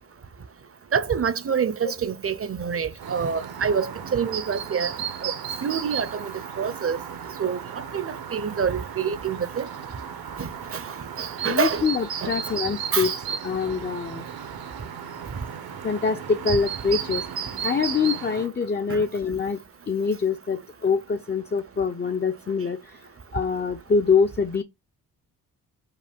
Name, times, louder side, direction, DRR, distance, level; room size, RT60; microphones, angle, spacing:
voice 1, 0.9-4.9 5.2-5.3 5.6-6.3 6.6-7.0 7.4-7.6 7.9-9.7 10.4-10.8 11.2-11.9 12.2-12.3 12.9-13.1 18.9-19.0, right 6 dB, 35° right, 0.7 m, -26 dB
Chirp tweet, 3.0-18.5, right 7 dB, 65° right, 1.0 m, -34 dB
voice 2, 11.4-13.1 13.4-14.2 15.8-17.2 17.6-19.6 19.9-23.1 23.3-24.6, left 5 dB, 25° left, 0.6 m, -24 dB
5.6 x 2.2 x 3.5 m
supercardioid pair, 50°, 39 cm